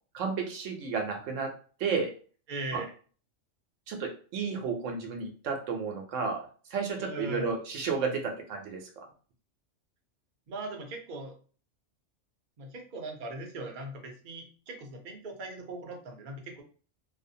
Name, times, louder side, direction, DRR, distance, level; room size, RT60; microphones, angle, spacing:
voice 1, 0.1-1.5 1.8-2.1 2.7-2.8 3.9-6.4 6.7-8.8, right 5 dB, 75° right, 2 dB, 0.9 m, -32 dB
voice 2, 2.5-2.9 7.0-7.5 10.5-11.3 12.6-16.6, right 2 dB, 50° right, 2 dB, 0.6 m, -40 dB
2.6 x 2.1 x 2.6 m, 0.40 s
omnidirectional pair, 1.3 m